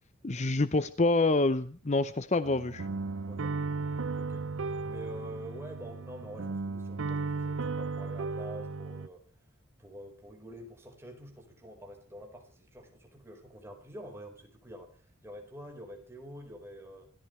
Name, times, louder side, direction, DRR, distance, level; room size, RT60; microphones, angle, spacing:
voice 1, 0.2-2.9, left 2 dB, 35° left, 13 dB, 0.7 m, -27 dB
sound 1, 2.4-9.1, right 4 dB, 70° right, 0.7 m, -35 dB
voice 2, 4.0-4.5 4.8-9.2 9.8-17.1, right 1 dB, 10° right, 2 dB, 4.8 m, -47 dB
27.0 x 13.5 x 3.3 m, 0.41 s
head